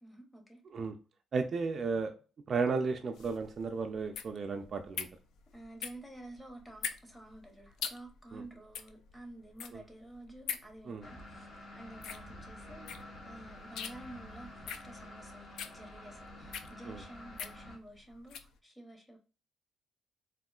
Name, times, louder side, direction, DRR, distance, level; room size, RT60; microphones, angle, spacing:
voice 1, 0.0-0.6 5.5-11.5 11.7-12.9 13.2-19.2, right 1 dB, 10° left, 0.7 m, -51 dB
voice 2, 1.3-2.1 2.5-5.1 8.3-8.4 9.7-9.8 10.9-11.1 16.9-17.0, right 4 dB, 40° right, 0.3 m, -34 dB
sound 1, 3.1-18.5, left 7 dB, 80° left, 0.3 m, -44 dB
sound 2, 11.0-17.8, left 1 dB, 50° left, 0.7 m, -49 dB
3.6 x 2.4 x 2.3 m
cardioid pair, 155°, 0 cm